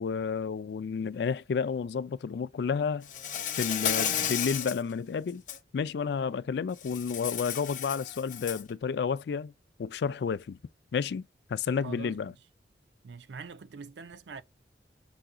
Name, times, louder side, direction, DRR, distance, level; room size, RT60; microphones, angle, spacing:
voice 1, 0.0-3.1 3.6-5.4 5.7-9.5 9.8-10.6 10.9-12.3, left 6 dB, 65° left, 0.3 m, -31 dB
Insect, 3.1-4.8 5.3-5.6 6.8-8.7, left 9 dB, 45° left, 0.7 m, -32 dB
voice 2, 11.8-12.3 13.0-14.4, right 5 dB, 80° right, 0.5 m, -44 dB
5.7 x 2.3 x 3.8 m
head